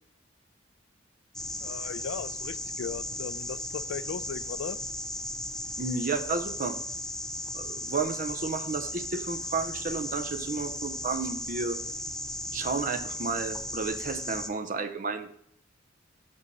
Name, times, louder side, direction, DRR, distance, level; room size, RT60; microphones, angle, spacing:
sound 1, 1.3-14.5, left 1 dB, 5° left, 0.4 m, -36 dB
voice 1, 1.6-4.8, left 6 dB, 65° left, 17 dB, 0.3 m, -37 dB
voice 2, 5.8-6.8 7.5-11.8 12.5-15.3, right 4 dB, 45° right, 9 dB, 0.7 m, -32 dB
6.3 x 5.3 x 5.4 m, 0.67 s
head